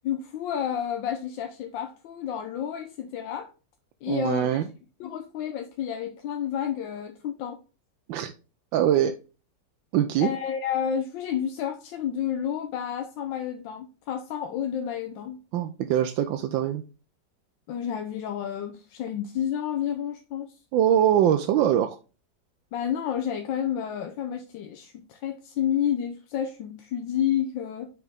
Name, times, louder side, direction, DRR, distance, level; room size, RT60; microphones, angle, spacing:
voice 1, 0.0-3.5 4.0-4.6 5.0-7.6 10.2-15.4 17.7-20.5 22.7-27.9, left 9 dB, 85° left, 1.4 m, -30 dB
voice 2, 4.1-4.7 8.1-8.3 8.7-9.2 9.9-10.3 15.5-16.8 20.7-22.0, right 10 dB, 85° right, 1.3 m, -23 dB
5.8 x 5.3 x 3.5 m
omnidirectional pair, 2.0 m